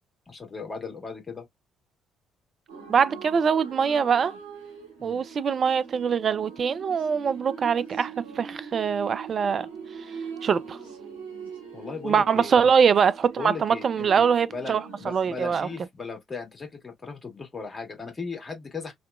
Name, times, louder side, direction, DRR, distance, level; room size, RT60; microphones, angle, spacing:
voice 1, 0.3-1.4 5.0-5.2 11.7-12.7 13.4-14.2 14.5-18.9, left 4 dB, 30° left, 1.5 m, -37 dB
sound 1, 2.7-15.8, right 6 dB, 85° right, 1.0 m, -42 dB
voice 2, 2.9-4.3 5.0-9.7 10.4-10.8 12.0-15.7, right 6 dB, 45° right, 0.3 m, -23 dB
2.8 x 2.1 x 2.4 m
figure-of-eight pair, 45°, 0 cm